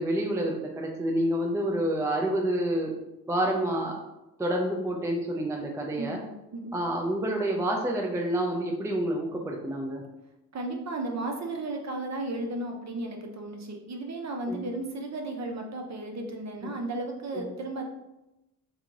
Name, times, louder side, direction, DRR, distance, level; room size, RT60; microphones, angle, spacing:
voice 1, 0.0-2.9 3.3-3.9 4.4-6.2 6.7-10.0 14.5-14.6 16.6-16.7 17.3-17.5, right 1 dB, 5° right, 0 dB, 0.5 m, -28 dB
voice 2, 10.5-17.8, right 2 dB, 35° right, 2 dB, 0.8 m, -34 dB
3.6 x 2.4 x 2.9 m, 0.93 s
hypercardioid pair, 50°, 46 cm